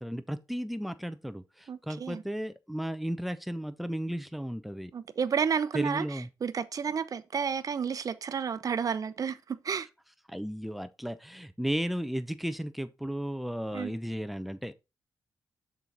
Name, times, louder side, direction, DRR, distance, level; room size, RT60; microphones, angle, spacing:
voice 1, 0.0-4.9 5.7-6.3 10.3-14.7, equal, ahead, 0.8 m, -34 dB
voice 2, 1.7-2.2 4.9-9.9 13.7-13.9, right 6 dB, 50° right, 0.8 m, -31 dB
6.8 x 4.7 x 4.0 m
cardioid pair, 75°, 8 cm